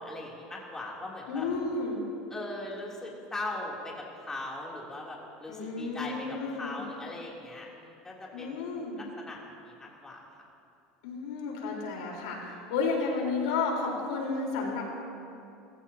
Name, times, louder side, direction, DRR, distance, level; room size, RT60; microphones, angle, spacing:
voice 1, 0.0-1.5 2.3-8.7 9.0-9.4 9.6-10.2, left 2 dB, 15° left, -3 dB, 3.0 m, -40 dB
voice 2, 1.3-2.0 5.5-6.8 8.3-9.0 11.0-14.8, left 4 dB, 85° left, -1 dB, 4.1 m, -32 dB
29.0 x 16.0 x 2.9 m, 2.6 s
supercardioid pair, 120°, 4 cm